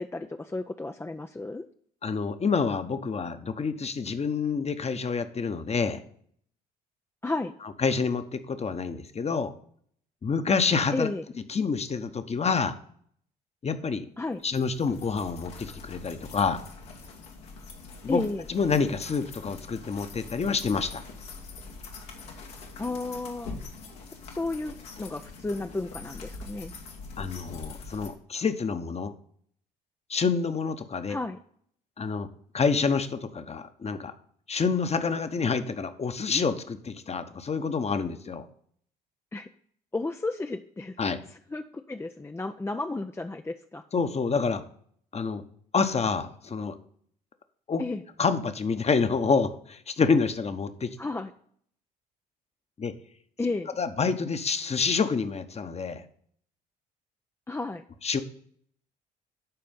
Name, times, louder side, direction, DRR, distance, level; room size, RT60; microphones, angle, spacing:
voice 1, 0.0-1.7 7.2-7.5 10.9-11.2 14.2-14.4 18.1-18.5 22.8-23.6 24.3-26.7 31.1-31.4 39.3-39.5 39.9-41.0 41.5-43.8 47.8-48.0 51.0-51.3 53.4-53.7 57.5-57.8, left 2 dB, 10° left, 7 dB, 0.5 m, -32 dB
voice 2, 2.0-6.0 7.8-9.5 10.2-11.1 11.5-12.8 13.6-14.1 14.4-16.6 18.0-18.2 18.5-21.0 27.2-29.1 30.1-31.2 32.0-32.3 32.5-34.1 34.5-38.5 41.0-41.2 43.9-44.6 45.1-45.4 45.7-46.8 47.7-47.8 48.2-51.0 52.8-52.9 53.8-56.0 58.0-58.2, left 5 dB, 30° left, 10 dB, 1.0 m, -27 dB
sound 1, 14.4-28.1, left 4 dB, 80° left, 1.7 m, -43 dB
11.5 x 4.4 x 5.3 m, 0.62 s
hypercardioid pair, 50°, 21 cm